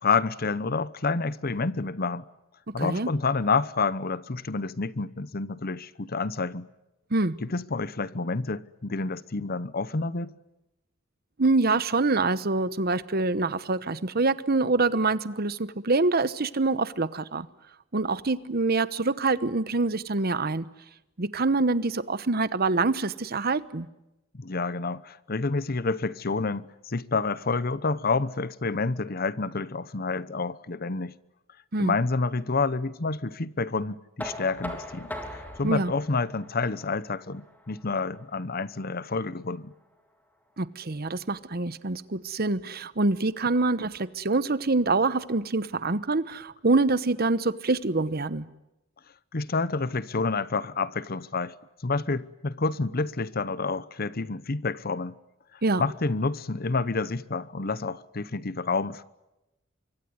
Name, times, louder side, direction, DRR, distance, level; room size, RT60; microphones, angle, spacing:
voice 1, 0.0-2.3 2.7-6.7 7.4-10.3 24.3-31.1 31.8-39.7 49.3-51.5 51.8-55.1 55.8-59.0, left 4 dB, 50° left, 0.9 m, -29 dB
voice 2, 2.8-3.1 7.1-7.4 11.4-17.5 17.9-20.6 21.2-23.9 31.7-32.0 35.6-35.9 40.6-48.4 55.6-55.8, right 3 dB, 50° right, 1.1 m, -25 dB
Knock, 34.2-40.0, left 1 dB, 10° left, 3.5 m, -42 dB
24.5 x 24.5 x 9.7 m
head